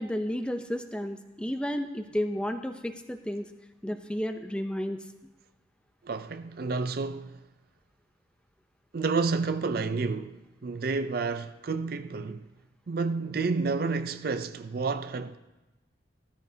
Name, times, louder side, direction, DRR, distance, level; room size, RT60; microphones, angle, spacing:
voice 1, 0.0-3.5 3.8-5.0, equal, 5° left, 0.6 m, -32 dB
voice 2, 6.0-7.4 8.9-12.5 12.9-15.4, right 4 dB, 50° right, 0.4 m, -30 dB
15.5 x 13.5 x 2.7 m
head